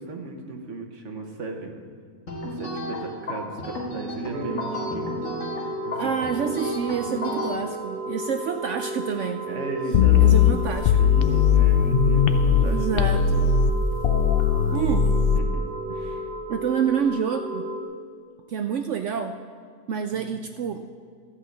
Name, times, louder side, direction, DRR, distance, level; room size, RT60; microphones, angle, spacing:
voice 1, 0.0-1.7 2.4-5.2 5.8-6.1 9.5-10.2 10.5-13.0 13.3-13.5 15.3-15.6 15.9-16.2 20.1-20.4, right 3 dB, 50° right, 3 dB, 1.4 m, -36 dB
sound 1, 2.3-7.5, left 1 dB, 50° left, 2.0 m, -33 dB
sound 2, 4.3-17.8, right 1 dB, 25° right, 1.1 m, -33 dB
voice 2, 6.0-9.6 10.1-11.1 12.6-13.4 14.7-15.1 16.5-17.7 18.5-19.4 19.9-20.8, right 7 dB, 70° right, 7 dB, 0.7 m, -28 dB
sound 3, 9.9-12.7 13.0-15.4, left 7 dB, 70° left, 0.5 m, -19 dB
13.0 x 5.7 x 8.0 m, 2.1 s
omnidirectional pair, 1.7 m